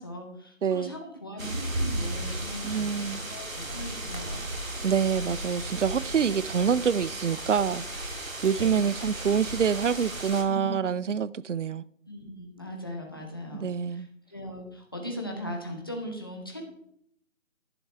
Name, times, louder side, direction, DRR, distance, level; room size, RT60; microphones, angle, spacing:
voice 1, 0.0-4.5 8.5-8.9 10.5-10.8 12.1-16.6, equal, 20° left, 1.0 m, -39 dB
voice 2, 0.6-0.9 2.6-3.2 4.8-7.8 8.4-11.8 13.6-14.1, right 7 dB, 65° right, 0.5 m, -26 dB
sound 1, 1.4-10.4, right 1 dB, 90° right, 2.7 m, -35 dB
11.0 x 10.5 x 3.3 m
figure-of-eight pair, 170°, 39 cm